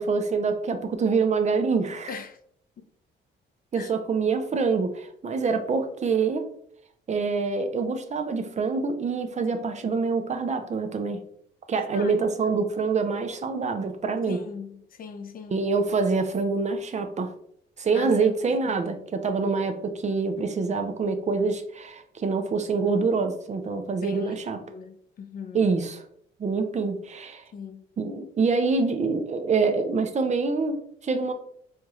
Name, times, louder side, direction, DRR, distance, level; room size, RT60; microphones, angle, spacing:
voice 1, 0.0-2.1 3.7-6.4 7.1-11.2 11.7-14.4 15.5-17.3 17.8-24.6 25.5-26.0 26.4-27.4 28.0-31.3, right 4 dB, 35° right, 0.5 m, -26 dB
voice 2, 2.1-2.4 2.8-2.9 3.7-3.9 11.9-12.6 14.3-15.6 17.9-18.7 24.0-25.7 27.5-27.8, left 6 dB, 45° left, 0.5 m, -40 dB
4.4 x 2.3 x 3.0 m
cardioid pair, 90°, 20 cm